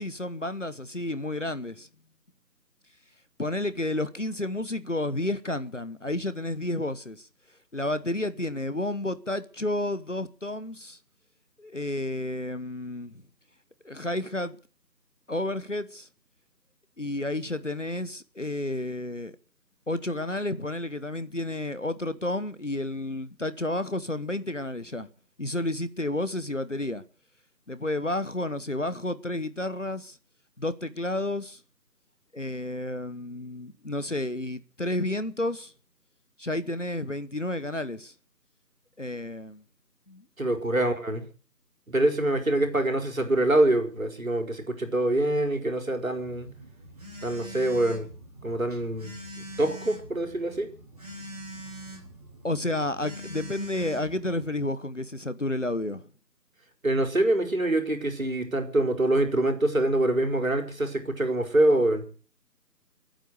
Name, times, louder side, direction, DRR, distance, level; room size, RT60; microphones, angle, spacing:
voice 1, 0.0-1.9 3.4-7.3 7.7-11.0 11.6-13.2 13.8-14.6 15.3-16.1 17.0-19.3 19.9-25.1 25.4-27.0 27.7-30.2 30.6-31.6 32.3-35.7 36.4-38.1 39.0-39.6 40.1-40.2 52.4-56.1, left 1 dB, 45° left, 1.1 m, -31 dB
voice 2, 40.4-41.2 41.9-46.5 47.2-48.1 48.4-49.2 49.6-50.7 56.8-62.0, right 1 dB, 55° right, 4.8 m, -25 dB
Telephone, 46.2-54.7, right 1 dB, 25° right, 4.0 m, -43 dB
23.0 x 9.2 x 6.7 m
figure-of-eight pair, 175°, 50 cm